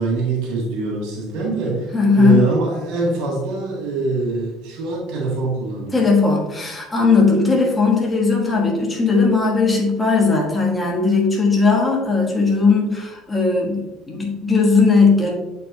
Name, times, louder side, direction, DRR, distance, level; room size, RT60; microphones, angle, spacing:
voice 1, 0.0-6.0, right 3 dB, 85° right, -3 dB, 1.5 m, -23 dB
voice 2, 1.9-2.4 5.9-15.3, left 4 dB, 10° left, -2 dB, 1.3 m, -17 dB
8.0 x 4.5 x 2.8 m, 1.0 s
cardioid pair, 160°, 0 cm